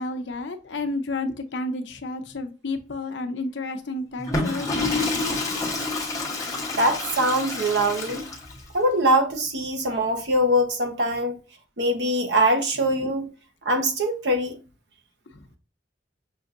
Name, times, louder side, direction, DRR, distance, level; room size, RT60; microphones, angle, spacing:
voice 1, 0.0-5.4 15.3-15.4, left 2 dB, 70° left, 0.7 m, -31 dB
Water / Toilet flush, 4.2-8.7, left 2 dB, 20° left, 1.0 m, -29 dB
voice 2, 6.8-8.2 8.7-11.4 11.8-13.3 13.6-14.6, right 1 dB, 65° right, 0.9 m, -22 dB
6.2 x 2.6 x 2.5 m
head